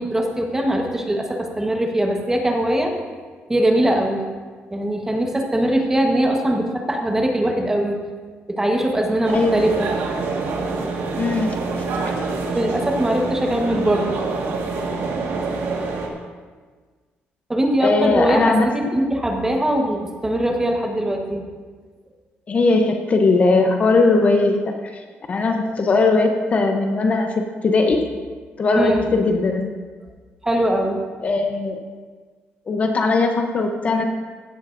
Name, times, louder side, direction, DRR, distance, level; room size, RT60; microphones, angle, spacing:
voice 1, 0.0-2.9 3.5-4.2 4.7-8.0 8.5-9.9 12.5-14.1 14.4-14.6 17.5-21.4 25.4-25.7 28.7-29.1 30.4-31.0, right 1 dB, 10° right, 2 dB, 1.2 m, -21 dB
sound 1, 9.2-16.1, right 4 dB, 85° right, 1.7 m, -26 dB
voice 2, 9.3-9.6 11.2-11.8 17.8-18.7 22.5-25.0 25.3-28.0 28.6-29.7 31.2-31.8 32.7-34.1, left 3 dB, 35° left, 4 dB, 0.8 m, -19 dB
16.0 x 11.0 x 2.6 m, 1.5 s
cardioid pair, 145°, 4 cm